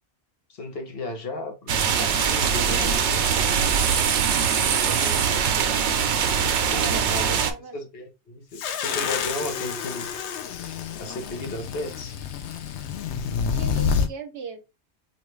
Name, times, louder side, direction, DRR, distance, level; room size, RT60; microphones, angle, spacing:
voice 1, 0.5-3.6 4.6-5.4 6.7-7.4 7.7-10.1 11.0-12.2, left 1 dB, 60° left, 1.1 m, -35 dB
sound 1, 1.7-7.5, right 7 dB, 90° right, 1.0 m, -22 dB
voice 2, 6.7-7.7 13.5-14.6, right 5 dB, 65° right, 1.0 m, -38 dB
sound 2, 8.6-14.1, left 6 dB, 80° left, 0.9 m, -28 dB
4.4 x 2.3 x 3.1 m
omnidirectional pair, 1.1 m